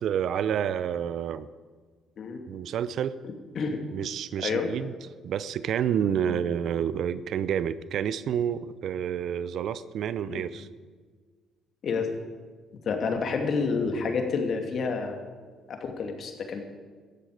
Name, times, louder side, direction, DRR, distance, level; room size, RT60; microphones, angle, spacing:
voice 1, 0.0-1.5 2.5-3.1 3.9-4.9 5.2-10.7, right 9 dB, 65° right, 16 dB, 0.7 m, -29 dB
voice 2, 12.9-15.2 15.7-16.6, left 5 dB, 55° left, 4 dB, 2.5 m, -29 dB
17.5 x 13.5 x 5.0 m, 1.5 s
hypercardioid pair, 50°, 0 cm